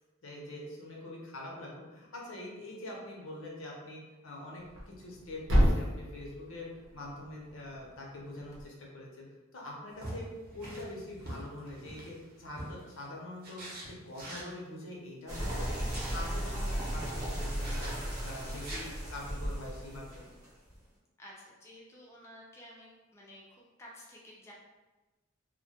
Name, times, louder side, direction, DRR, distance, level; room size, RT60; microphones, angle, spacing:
voice 1, 0.2-9.3 9.5-10.3 10.5-13.6 14.0-17.9 18.2-20.4, left 1 dB, 85° left, -2 dB, 0.6 m, -44 dB
Thump thud, 4.6-8.7, equal, 85° right, 0.7 m, -32 dB
sound 1, 10.0-13.0 13.4-14.5 15.5-16.2 17.6-18.0 18.5-18.8, right 1 dB, 50° right, 0.7 m, -44 dB
sound 2, 15.3-20.7, equal, 20° right, 0.7 m, -35 dB
voice 2, 21.2-24.5, equal, 15° left, -4 dB, 0.3 m, -52 dB
2.1 x 2.1 x 2.7 m, 1.2 s
head